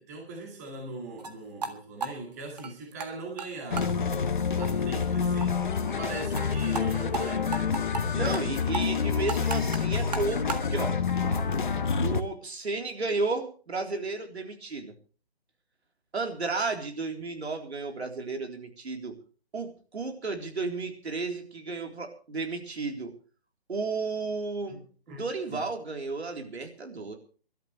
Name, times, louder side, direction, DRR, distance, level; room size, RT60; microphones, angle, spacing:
voice 1, 0.0-3.9 4.6-5.6 6.0-7.8 24.7-24.8 25.1-25.6, right 2 dB, 15° right, 1 dB, 2.1 m, -40 dB
sound 1, 1.2-1.3 1.6-1.7 2.0-3.1 3.4-3.5 3.8-3.9 4.2-4.3 4.6-4.7 5.0-5.1 5.4-5.5 5.7-5.8 6.1-6.5 6.7-6.8 7.1-7.2 7.5-8.0 8.3-8.5 8.7-10.7, right 4 dB, 40° right, 1.7 m, -34 dB
sound 2, 3.7-12.2, left 6 dB, 50° left, 1.2 m, -28 dB
voice 2, 8.1-11.0 12.0-14.9 16.1-19.2 19.5-23.1 23.7-24.8 25.1-27.2, right 3 dB, 85° right, 3 dB, 3.8 m, -33 dB
25.0 x 12.5 x 3.2 m, 0.39 s
hypercardioid pair, 175°, 32 cm